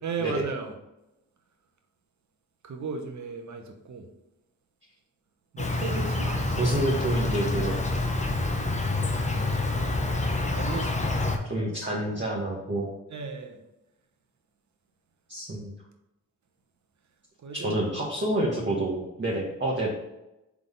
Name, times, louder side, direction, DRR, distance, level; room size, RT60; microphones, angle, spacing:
voice 1, 0.0-0.7 2.6-4.1 5.5-6.8 8.2-8.4 10.5-11.2 13.1-13.6 17.4-17.8 18.2-18.3, right 4 dB, 50° right, 4 dB, 0.9 m, -36 dB
Insect, 5.6-11.4, left 2 dB, 20° left, 0.8 m, -27 dB
voice 2, 6.6-7.8 11.5-12.9 15.3-15.7 17.6-19.9, right 1 dB, 30° right, -5 dB, 1.3 m, -28 dB
3.7 x 3.5 x 3.7 m, 0.93 s
supercardioid pair, 40°, 37 cm